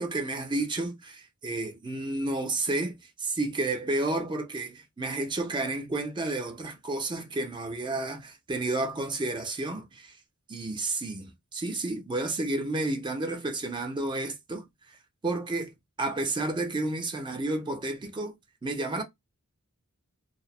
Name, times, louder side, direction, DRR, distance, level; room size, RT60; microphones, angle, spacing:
voice 1, 0.0-10.2 10.5-15.0 15.2-15.7 16.0-18.3 18.6-19.0, right 2 dB, 20° right, 0.4 m, -31 dB
3.0 x 2.0 x 2.2 m
head